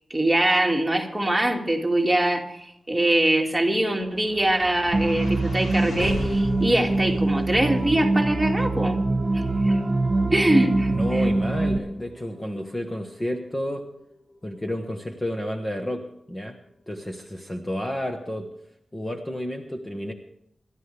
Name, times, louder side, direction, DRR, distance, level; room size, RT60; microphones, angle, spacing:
voice 1, 0.1-9.0 9.3-9.8 10.3-10.9, right 1 dB, 5° right, 0 dB, 2.4 m, -23 dB
sound 1, 3.4-15.8, left 2 dB, 70° left, 4.2 m, -39 dB
sound 2, 4.9-11.8, right 2 dB, 30° right, 1.9 m, -24 dB
voice 2, 10.9-13.8 14.4-16.6 16.9-18.5 18.9-20.1, left 1 dB, 20° left, 3 dB, 1.3 m, -31 dB
28.0 x 13.0 x 3.4 m, 0.78 s
wide cardioid pair, 130°, 0 cm